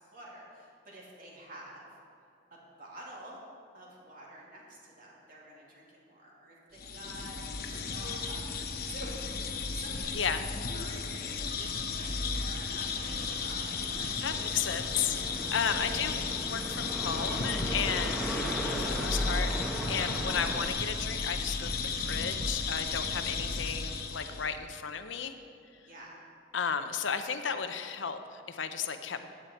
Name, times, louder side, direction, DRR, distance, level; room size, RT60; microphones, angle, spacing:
voice 1, 0.0-1.9 2.5-3.4 3.7-14.7 15.7-16.1 17.8-18.0 25.8-26.2, right 1 dB, 50° right, -4 dB, 2.8 m, -49 dB
sound 1, 6.8-24.5, left 4 dB, 55° left, 0.9 m, -34 dB
voice 2, 10.1-10.5 14.2-15.2 15.5-18.4 18.8-19.5 19.9-25.3 26.5-29.3, left 7 dB, 85° left, 8 dB, 0.7 m, -34 dB
sound 2, 13.0-20.7, equal, ahead, 1.2 m, -38 dB
15.0 x 9.6 x 4.4 m, 2.4 s
head